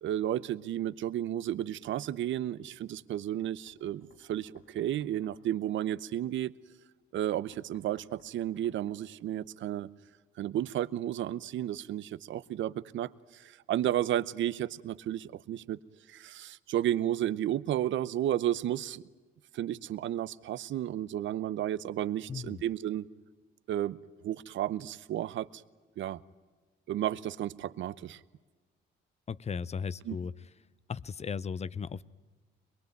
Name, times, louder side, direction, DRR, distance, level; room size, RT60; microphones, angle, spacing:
voice 1, 0.0-6.5 7.1-9.9 10.4-15.8 16.1-19.0 19.5-23.0 23.7-24.0 24.2-25.6 26.0-26.2 26.9-28.2 30.1-30.2, right 12 dB, 70° right, 18 dB, 0.8 m, -32 dB
Knock, 3.7-5.4 7.3-9.0, left 4 dB, 70° left, 5.3 m, -62 dB
voice 2, 22.3-22.6 29.3-30.3 30.9-32.0, left 6 dB, 35° left, 20 dB, 0.7 m, -36 dB
23.5 x 21.5 x 9.2 m, 1.3 s
cardioid pair, 90°, 20 cm